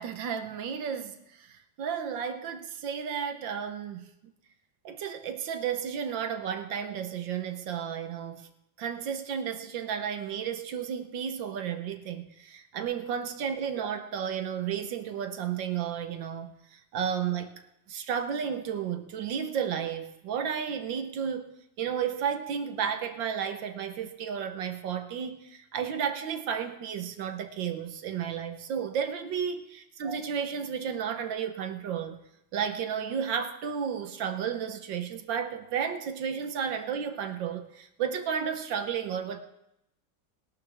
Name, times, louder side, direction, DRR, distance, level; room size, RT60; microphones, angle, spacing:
voice 1, 0.0-4.1 4.8-8.5 8.8-17.6 17.9-21.5 21.8-32.2 32.5-39.4, right 7 dB, 70° right, 7 dB, 1.6 m, -33 dB
20.5 x 12.0 x 3.5 m, 0.84 s
omnidirectional pair, 2.1 m